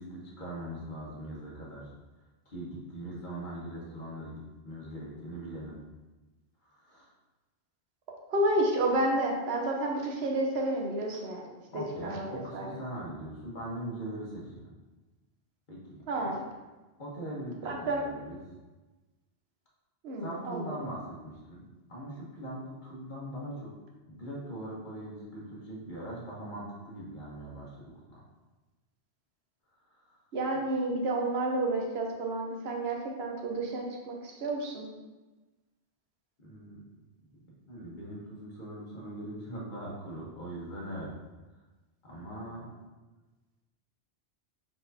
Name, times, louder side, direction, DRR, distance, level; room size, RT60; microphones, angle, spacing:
voice 1, 0.0-1.9 2.5-5.8 6.6-7.1 10.7-10.8 11.7-14.7 15.7-16.4 17.0-18.4 20.2-23.7 24.1-28.2 29.9-30.2 36.4-36.8 37.7-41.1 42.0-42.7, right 1 dB, 50° left, -5 dB, 1.2 m, -41 dB
voice 2, 8.3-11.5 12.0-12.7 16.1-16.4 17.6-18.1 20.0-20.7 30.3-34.9, right 1 dB, 75° right, 0 dB, 1.0 m, -30 dB
4.4 x 4.2 x 2.7 m, 1.2 s
omnidirectional pair, 1.1 m